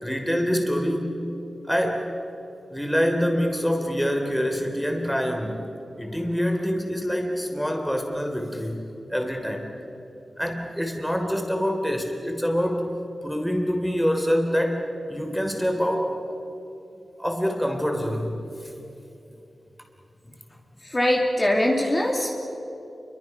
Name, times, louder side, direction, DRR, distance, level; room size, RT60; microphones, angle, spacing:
voice 1, 0.0-1.1 1.7-2.1 2.7-5.7 6.0-8.8 9.1-9.7 10.4-12.9 13.2-14.8 15.1-16.2 17.2-18.7, equal, ahead, 3 dB, 3.4 m, -25 dB
voice 2, 20.8-22.4, left 1 dB, 25° left, -1 dB, 2.8 m, -22 dB
29.0 x 24.0 x 6.0 m, 2.9 s
wide cardioid pair, 100°, 0 cm